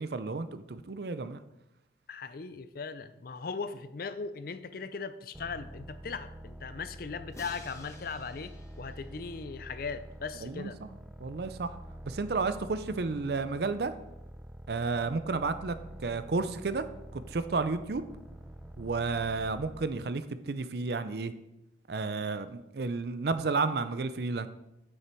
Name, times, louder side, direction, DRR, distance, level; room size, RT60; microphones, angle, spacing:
voice 1, 0.0-1.4 10.4-10.9 11.2-11.8 12.0-13.9 14.7-16.9 17.1-18.0 18.8-21.3 21.9-24.5, right 4 dB, 55° right, 11 dB, 0.5 m, -32 dB
voice 2, 2.1-10.8, left 5 dB, 50° left, 13 dB, 0.5 m, -39 dB
sound 1, 5.3-20.1, right 1 dB, 5° right, 0.4 m, -47 dB
Crash cymbal, 7.3-10.3, left 2 dB, 15° left, 0.9 m, -54 dB
8.6 x 6.5 x 4.5 m, 0.91 s
head